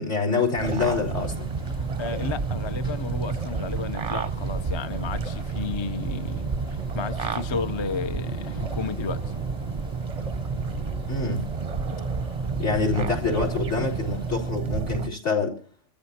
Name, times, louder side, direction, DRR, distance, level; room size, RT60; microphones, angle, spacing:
voice 1, 0.0-1.5 11.1-11.4 12.6-15.6, left 4 dB, 65° left, 4.2 m, -26 dB
sound 1, 0.6-15.1, right 5 dB, 35° right, 0.6 m, -30 dB
sound 2, 1.1-14.5, left 1 dB, 50° left, 1.9 m, -44 dB
voice 2, 1.8-9.3, left 5 dB, 30° left, 0.5 m, -33 dB
24.5 x 13.5 x 2.8 m
omnidirectional pair, 1.3 m